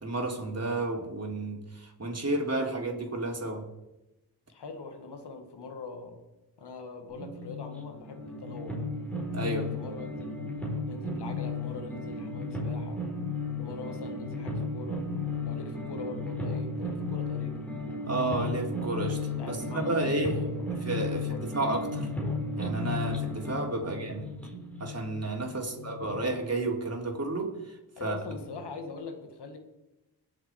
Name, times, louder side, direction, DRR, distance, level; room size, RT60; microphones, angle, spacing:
voice 1, 0.0-3.6 9.3-9.7 18.1-20.4 20.8-22.1 22.6-24.3 24.8-27.5 28.0-28.2, right 2 dB, 40° right, 0 dB, 3.5 m, -31 dB
voice 2, 4.5-6.2 6.6-8.8 9.4-10.5 10.9-13.0 13.6-15.0 15.4-17.6 19.3-21.4 23.8-24.0 25.6-25.9 28.0-29.6, left 3 dB, 80° left, 6 dB, 2.0 m, -42 dB
sound 1, 7.1-26.2, left 2 dB, 5° left, 4.6 m, -34 dB
21.5 x 7.4 x 4.8 m, 0.96 s
cardioid pair, 45°, 40 cm